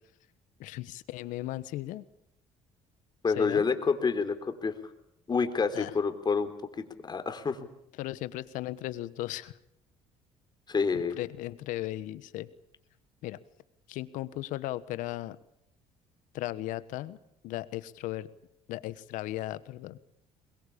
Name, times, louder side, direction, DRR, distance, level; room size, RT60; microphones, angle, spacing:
voice 1, 0.6-2.0 3.4-3.6 5.7-5.9 8.0-9.6 10.9-12.5 13.2-13.4 13.9-15.4 16.3-17.2 17.4-18.3 18.7-20.0, left 15 dB, 75° left, 15 dB, 1.3 m, -36 dB
voice 2, 3.2-4.7 5.3-6.5 6.8-7.6 10.7-11.2, left 5 dB, 35° left, 8 dB, 3.7 m, -28 dB
22.0 x 22.0 x 8.6 m, 0.80 s
supercardioid pair, 80°, 13 cm